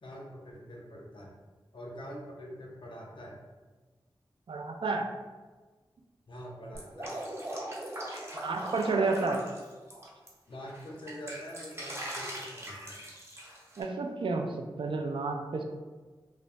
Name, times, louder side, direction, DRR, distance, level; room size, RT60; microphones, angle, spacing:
voice 1, 0.0-1.3 1.7-3.4 6.3-7.1 10.5-13.0, equal, 65° left, -2 dB, 0.7 m, -44 dB
voice 2, 4.5-5.1 8.1-9.4 13.8-15.6, right 3 dB, 70° right, 3 dB, 0.4 m, -31 dB
Drip, 6.7-10.3 10.7-13.8, right 1 dB, 30° right, 0.8 m, -40 dB
3.1 x 2.0 x 2.5 m, 1.3 s
cardioid pair, 45°, 9 cm